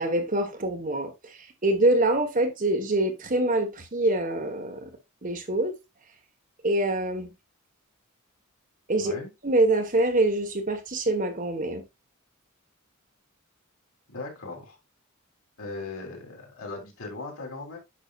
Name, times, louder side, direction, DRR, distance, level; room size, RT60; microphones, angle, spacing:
voice 1, 0.0-4.9 5.2-5.7 6.6-7.3 8.9-9.1 9.4-11.8, right 2 dB, 40° right, 1.4 m, -25 dB
voice 2, 9.0-9.3 14.1-14.8 15.6-17.8, left 3 dB, 85° left, 3.6 m, -38 dB
9.9 x 5.5 x 2.5 m
head